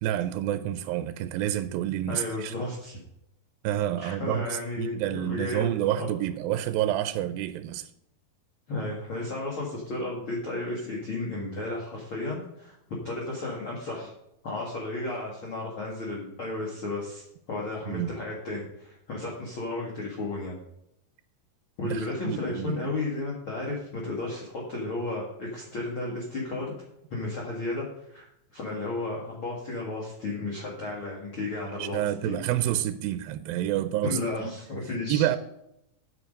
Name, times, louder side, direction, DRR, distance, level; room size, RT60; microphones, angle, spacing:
voice 1, 0.0-2.5 3.6-7.9 17.9-18.2 21.8-22.8 31.8-34.5 35.1-35.4, right 12 dB, 85° right, 2.3 m, -29 dB
voice 2, 2.1-3.0 4.0-5.7 6.0-6.1 8.7-14.1 14.4-20.6 21.8-26.7 27.1-28.3 28.5-32.0 32.3-32.4 34.0-35.3, left 2 dB, 40° left, 2.2 m, -33 dB
9.8 x 8.0 x 5.3 m
omnidirectional pair, 4.3 m